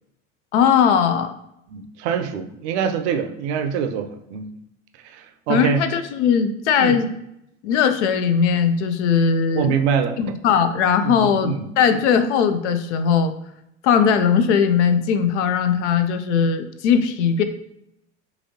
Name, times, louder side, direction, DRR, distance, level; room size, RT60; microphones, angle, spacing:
voice 1, 0.5-1.3 5.5-7.1 7.6-9.8 10.2-13.3 13.8-17.4, left 7 dB, 70° left, 9 dB, 0.5 m, -19 dB
voice 2, 1.7-4.5 5.1-5.8 6.8-7.0 9.5-10.2 11.0-11.6, right 7 dB, 65° right, 7 dB, 0.6 m, -24 dB
3.9 x 3.0 x 2.7 m, 0.80 s
hypercardioid pair, 75°, 37 cm